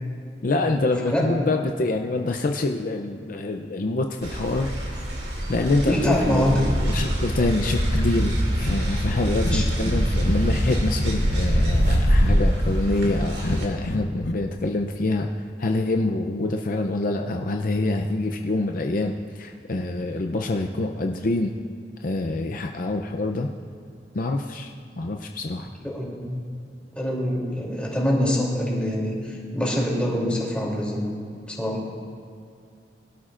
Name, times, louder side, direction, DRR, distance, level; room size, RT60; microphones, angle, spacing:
voice 1, 0.4-5.1 5.5-15.3 15.6-21.5 22.0-23.5 24.1-25.7, left 2 dB, 50° left, 4 dB, 0.6 m, -26 dB
sound 1, 4.2-13.7, equal, 70° right, 2.7 m, -24 dB
voice 2, 5.8-6.6 9.5-9.7 25.8-26.3 26.9-31.1 31.5-31.8, equal, 5° left, -4 dB, 3.0 m, -25 dB
Breathing, 8.2-8.4 8.6-8.8 9.0-9.2 9.4-10.8 11.0-12.0 12.3-13.2 13.4-14.3, left 1 dB, 85° left, 0.9 m, -29 dB
22.0 x 12.5 x 2.5 m, 2.4 s
head